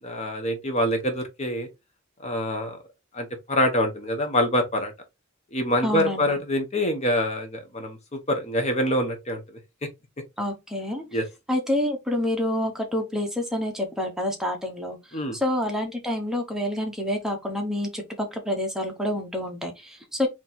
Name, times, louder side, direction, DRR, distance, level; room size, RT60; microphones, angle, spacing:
voice 1, 0.0-1.7 2.2-2.8 3.1-4.9 5.5-9.4 11.1-11.2 15.1-15.4, left 1 dB, 30° left, 0.9 m, -25 dB
voice 2, 5.8-6.4 10.4-11.0 11.5-20.3, left 1 dB, 5° right, 1.0 m, -28 dB
4.1 x 3.0 x 4.2 m
head